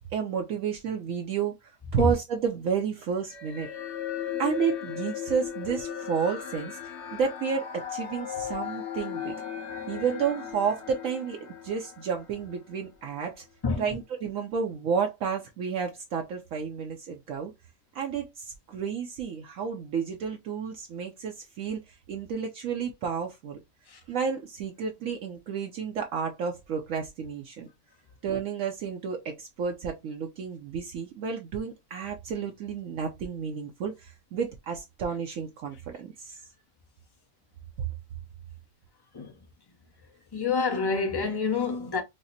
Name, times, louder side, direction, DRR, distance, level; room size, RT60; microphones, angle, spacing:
voice 1, 0.1-3.7 4.4-9.3 9.9-11.4 11.6-13.4 13.8-17.5 17.9-23.6 24.1-27.7 28.2-36.4 37.8-37.9, right 6 dB, 70° right, 0.9 m, -31 dB
sound 1, 3.3-12.8, left 9 dB, 55° left, 1.0 m, -37 dB
voice 2, 40.3-42.0, left 4 dB, 30° left, 0.4 m, -27 dB
4.8 x 2.0 x 2.6 m
omnidirectional pair, 1.6 m